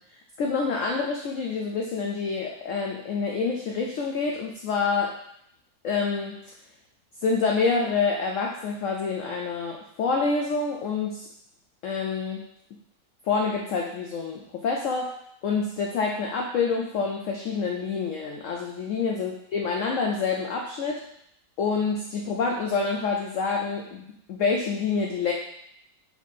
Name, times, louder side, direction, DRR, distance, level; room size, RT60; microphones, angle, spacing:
voice 1, 0.4-5.2 5.8-6.4 7.2-11.3 11.8-12.4 13.3-15.1 15.4-21.0 21.6-24.0 24.3-25.3, left 4 dB, 85° left, 0 dB, 0.6 m, -27 dB
4.5 x 2.9 x 4.1 m, 0.72 s
omnidirectional pair, 2.0 m